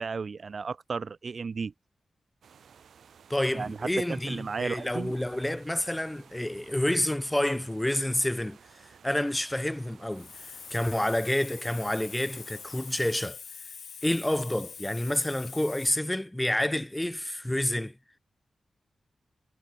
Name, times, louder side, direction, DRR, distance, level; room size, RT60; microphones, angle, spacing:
voice 1, 0.0-1.7 3.5-5.1, right 5 dB, 45° right, 0.6 m, -34 dB
sound 1, 2.4-13.3, right 7 dB, 85° right, 3.3 m, -56 dB
voice 2, 3.3-8.6 9.0-10.3 10.7-13.4 14.0-18.0, left 1 dB, 5° left, 0.7 m, -28 dB
Hiss, 10.1-15.9, left 6 dB, 65° left, 2.3 m, -44 dB
wide cardioid pair, 170°, 0 cm